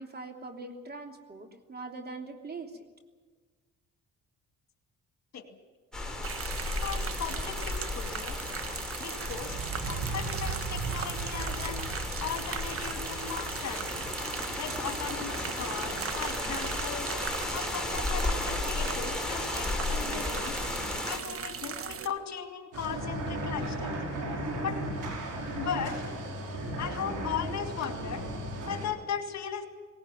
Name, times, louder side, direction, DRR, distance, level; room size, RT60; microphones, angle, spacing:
voice 1, 0.0-2.9, right 3 dB, 30° right, 4 dB, 3.1 m, -42 dB
sound 1, 5.9-21.2, left 2 dB, ahead, 4.2 m, -34 dB
sound 2, 6.2-22.1, right 6 dB, 45° right, 1.6 m, -37 dB
voice 2, 6.8-8.4 9.0-9.6 9.8-11.8 12.2-14.0 14.6-17.1 17.5-20.6 21.1-24.0 24.6-24.8 25.5-25.9 26.8-28.2 28.6-29.7, left 8 dB, 60° left, 7 dB, 2.4 m, -37 dB
sound 3, 22.7-28.9, right 1 dB, 85° right, 5.3 m, -35 dB
18.5 x 18.5 x 9.3 m, 1.4 s
cardioid pair, 90°, 30 cm